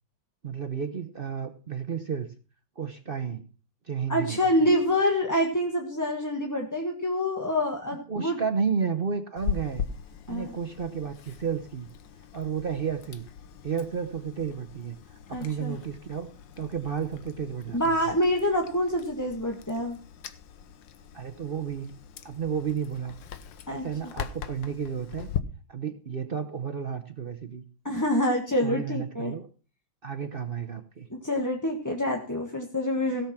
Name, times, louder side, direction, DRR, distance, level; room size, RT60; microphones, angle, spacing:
voice 1, 0.4-2.3 2.8-3.4 3.8-4.7 8.1-9.8 10.3-11.9 12.3-13.2 13.6-16.3 16.6-18.0 21.1-21.9 22.2-23.2 23.7-25.3 25.7-27.6 28.6-29.5 30.0-31.1, right 6 dB, 60° right, 6 dB, 0.5 m, -32 dB
voice 2, 4.1-8.4 10.3-10.5 15.3-15.8 17.7-20.0 23.7-23.9 27.8-29.3 31.1-33.3, left 1 dB, 10° left, 1 dB, 1.3 m, -26 dB
Chewing mastication, 9.4-25.4, left 8 dB, 70° left, 1.6 m, -40 dB
16.5 x 7.2 x 5.8 m, 0.37 s
omnidirectional pair, 2.2 m